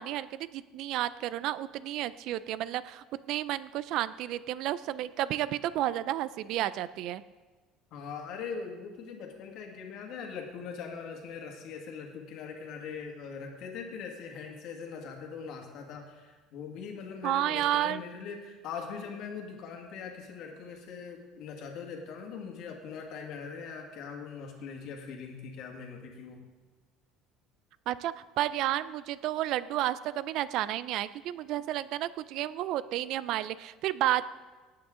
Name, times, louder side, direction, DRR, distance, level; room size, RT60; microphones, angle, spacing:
voice 1, 0.0-7.2 17.2-18.0 27.9-34.3, right 13 dB, 55° right, 16 dB, 0.4 m, -31 dB
voice 2, 7.9-26.4, left 6 dB, 55° left, 2 dB, 1.9 m, -41 dB
18.0 x 8.8 x 3.7 m, 1.3 s
cardioid pair, 165°, 0 cm